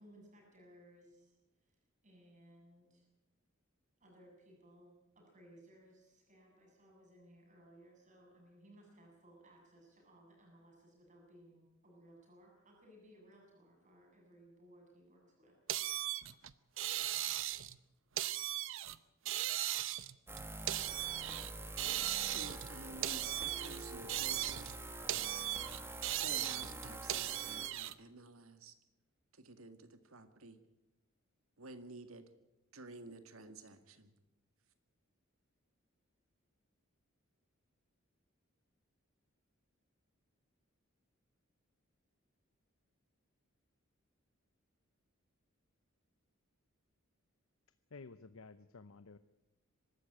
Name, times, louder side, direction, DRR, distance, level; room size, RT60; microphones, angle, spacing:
voice 1, 0.0-1.4 2.0-3.0 4.0-16.0, right 1 dB, 35° right, 0 dB, 7.5 m, -61 dB
sound 1, 15.7-17.8 18.2-19.0 19.3-21.5 21.8-22.7 23.0-24.8 25.1-27.9, right 13 dB, 65° right, 0.8 m, -38 dB
sound 2, 20.3-27.7, right 2 dB, 10° right, 1.7 m, -47 dB
voice 2, 22.3-24.8 26.2-28.7 29.3-30.6 31.6-32.3 32.7-34.1, right 3 dB, 85° right, 9 dB, 1.9 m, -52 dB
voice 3, 47.9-49.2, left 4 dB, 85° left, 12 dB, 0.8 m, -53 dB
24.0 x 13.0 x 8.8 m, 0.93 s
head